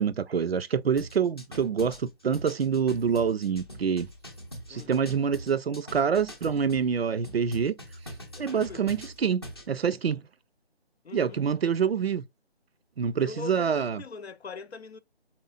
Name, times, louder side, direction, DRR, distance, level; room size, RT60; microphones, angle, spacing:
voice 1, 0.0-4.1 4.7-7.7 8.4-10.2 11.1-12.2 13.0-14.0, right 7 dB, 70° right, 0.5 m, -26 dB
sound 1, 1.0-6.9 7.2-9.7, equal, 25° left, 0.7 m, -43 dB
voice 2, 4.7-5.3 8.4-8.9 11.0-11.4 13.1-15.0, left 5 dB, 75° left, 0.7 m, -42 dB
4.5 x 4.3 x 2.4 m
figure-of-eight pair, 170°, 32 cm